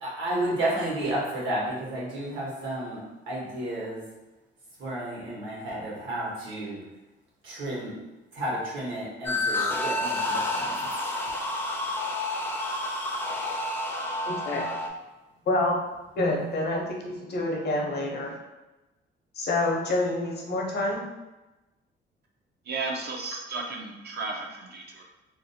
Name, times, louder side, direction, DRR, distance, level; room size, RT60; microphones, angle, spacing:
voice 1, 0.0-4.0 4.8-6.8 7.4-8.0 8.3-10.9, right 1 dB, 75° right, -5 dB, 1.1 m, -32 dB
sound 1, 9.3-14.9, left 2 dB, 10° left, 0.4 m, -29 dB
voice 2, 14.3-14.8 15.5-15.8 16.2-18.4 19.4-21.0, left 2 dB, 55° left, 0 dB, 0.6 m, -27 dB
voice 3, 22.7-25.0, right 3 dB, 55° right, 0 dB, 0.4 m, -34 dB
2.6 x 2.0 x 2.6 m, 1.1 s
cardioid pair, 90°, 20 cm